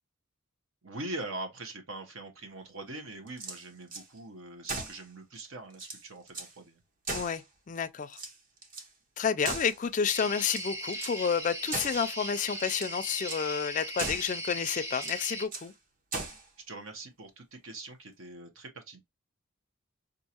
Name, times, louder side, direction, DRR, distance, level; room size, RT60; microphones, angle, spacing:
voice 1, 0.8-6.8 16.7-19.0, right 2 dB, 70° right, 1.0 m, -42 dB
sound 1, 3.3-4.1 4.6-5.0 5.4-5.5 5.7-6.5 7.0-7.8 8.1-8.9 9.4-10.0 10.4-11.2 11.7-12.1 12.6-13.0 13.3-13.5 14.0-14.4 14.9-15.7 16.1-16.5, right 2 dB, 40° right, 0.9 m, -38 dB
voice 2, 7.1-8.2 9.2-15.7, left 6 dB, 35° left, 0.3 m, -30 dB
sound 2, 10.0-15.5, equal, 15° right, 0.6 m, -38 dB
5.4 x 2.5 x 2.8 m
head